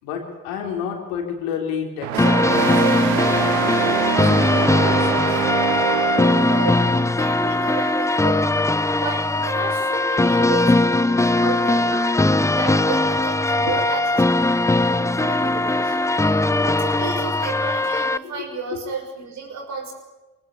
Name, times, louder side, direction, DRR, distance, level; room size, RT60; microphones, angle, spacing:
voice 1, 0.0-5.5 13.6-13.8 18.2-18.8, left 7 dB, 80° left, 3 dB, 3.7 m, -32 dB
sound 1, 2.0-7.1, right 10 dB, 75° right, 1.6 m, -25 dB
sound 2, 2.2-18.2, left 2 dB, 10° left, 0.8 m, -20 dB
voice 2, 6.5-8.5 9.0-12.1 12.5-14.6 14.8-16.0 16.6-19.9, right 4 dB, 55° right, 3 dB, 6.0 m, -32 dB
21.0 x 19.0 x 8.5 m, 1.1 s
hypercardioid pair, 50°, 33 cm